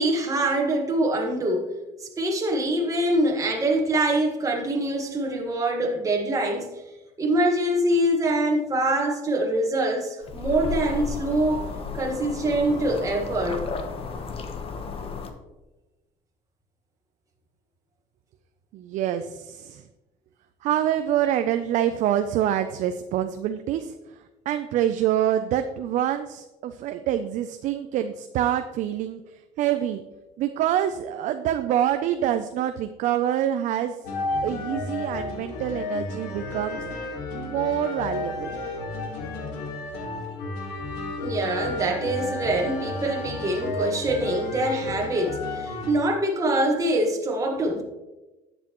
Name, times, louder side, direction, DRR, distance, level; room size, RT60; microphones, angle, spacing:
voice 1, 0.0-1.7 2.0-6.7 7.2-11.6 11.9-13.7 41.2-47.8, right 1 dB, 25° right, 1 dB, 1.6 m, -24 dB
sound 1, 10.2-15.3, left 5 dB, 40° left, 1.0 m, -33 dB
voice 2, 18.7-19.8 20.6-23.9 24.5-30.0 30.4-34.0 34.4-36.9 37.3-38.5, right 11 dB, 60° right, 8 dB, 0.5 m, -26 dB
sound 2, 34.0-45.9, left 2 dB, 90° left, 1.8 m, -32 dB
11.0 x 8.1 x 3.0 m, 1.1 s
cardioid pair, 115°, 14 cm